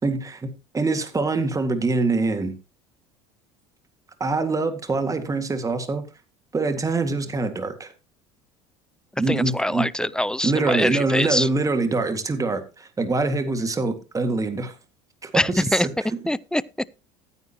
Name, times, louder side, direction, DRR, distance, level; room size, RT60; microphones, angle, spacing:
voice 1, 0.0-2.5 4.2-6.0 6.5-7.9 9.2-9.9 10.4-14.7 15.2-16.2, right 3 dB, 20° right, 2.0 m, -24 dB
voice 2, 9.3-11.5 15.3-15.9 16.3-16.6, left 1 dB, 5° left, 0.4 m, -23 dB
14.5 x 9.5 x 3.0 m
supercardioid pair, 85°, 16 cm